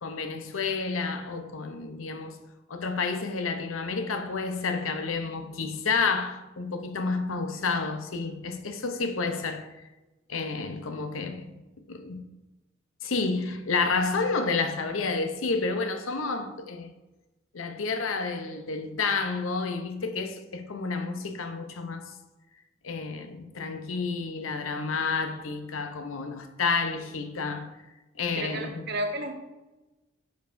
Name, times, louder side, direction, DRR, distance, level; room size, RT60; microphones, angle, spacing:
voice 1, 0.0-2.4 2.7-9.8 10.3-11.6 11.9-12.2 13.0-16.9 17.5-22.1 22.8-27.7 28.2-28.8, left 4 dB, 80° left, 0.7 m, -30 dB
voice 2, 28.3-29.3, right 1 dB, 55° right, 1.0 m, -32 dB
9.0 x 5.2 x 2.6 m
head